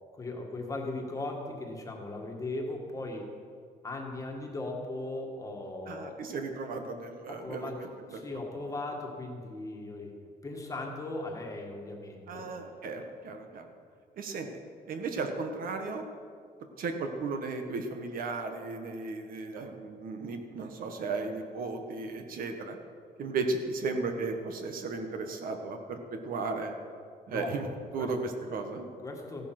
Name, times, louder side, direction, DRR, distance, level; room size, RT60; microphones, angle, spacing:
voice 1, 0.1-3.3 3.8-6.3 7.3-10.2 10.4-12.6 27.3-27.6 28.0-28.1 29.0-29.4, left 2 dB, 20° left, 1 dB, 1.8 m, -38 dB
voice 2, 5.9-8.2 12.3-13.6 14.2-14.5 14.9-16.0 16.8-22.8 23.2-26.7 27.3-27.6 27.9-28.9, right 3 dB, 60° right, 5 dB, 1.5 m, -35 dB
15.5 x 11.5 x 6.0 m, 2.1 s
cardioid pair, 180°, 17 cm